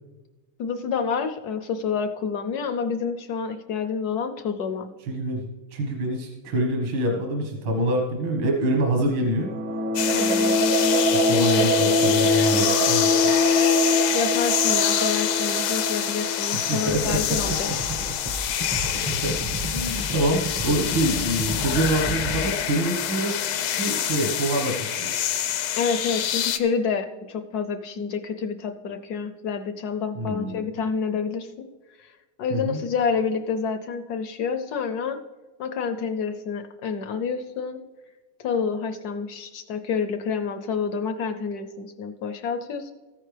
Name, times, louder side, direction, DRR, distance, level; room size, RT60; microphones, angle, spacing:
voice 1, 0.6-4.9 10.1-10.6 11.0-11.7 13.8-17.7 25.8-31.5 32.0-32.1 32.4-35.2 35.6-37.8 38.4-42.9, left 6 dB, 70° left, 9 dB, 0.9 m, -28 dB
voice 2, 5.0-9.5 11.1-13.3 16.7-17.8 18.1-18.2 18.5-18.8 19.0-19.4 19.7-23.4 23.7-25.2 30.2-30.6 32.5-32.8, right 1 dB, 75° right, 1 dB, 2.2 m, -26 dB
sound 1, 9.3-17.9, left 1 dB, 55° right, 0.8 m, -23 dB
sound 2, 10.0-26.6, left 10 dB, 85° left, 1.6 m, -26 dB
sound 3, 16.9-22.5, right 1 dB, 35° right, 0.4 m, -32 dB
14.0 x 10.0 x 3.3 m, 1.3 s
omnidirectional pair, 2.3 m